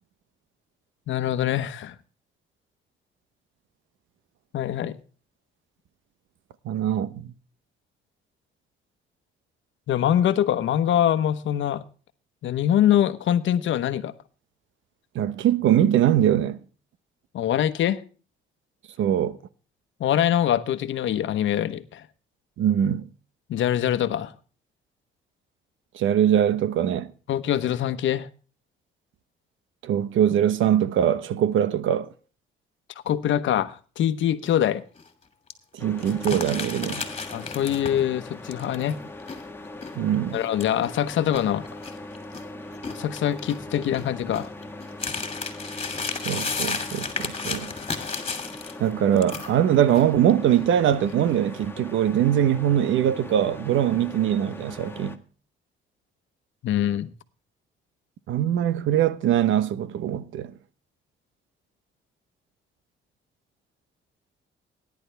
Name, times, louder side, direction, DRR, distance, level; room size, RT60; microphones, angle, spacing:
voice 1, 1.1-1.9 4.5-5.0 9.9-11.8 12.4-14.1 17.3-18.0 20.0-22.0 23.5-24.3 27.3-28.3 33.0-34.8 37.3-39.0 40.3-41.6 42.9-44.5 56.6-57.1, left 10 dB, 75° left, 1.1 m, -24 dB
voice 2, 6.6-7.3 15.1-16.6 19.0-19.4 22.6-23.1 25.9-27.1 29.8-32.1 35.7-37.1 40.0-40.4 46.1-47.7 48.8-55.2 58.3-60.5, right 10 dB, 75° right, 1.0 m, -22 dB
sound 1, 34.4-34.7 35.0-35.1 35.5-35.6 36.0-38.1 38.5-42.4 42.7-48.9 49.2-50.0 50.3-50.6 51.0-51.3, left 4 dB, 30° left, 2.7 m, -33 dB
sound 2, 35.8-55.2, left 2 dB, 10° left, 1.6 m, -40 dB
18.0 x 10.5 x 3.4 m
cardioid pair, 90°, 20 cm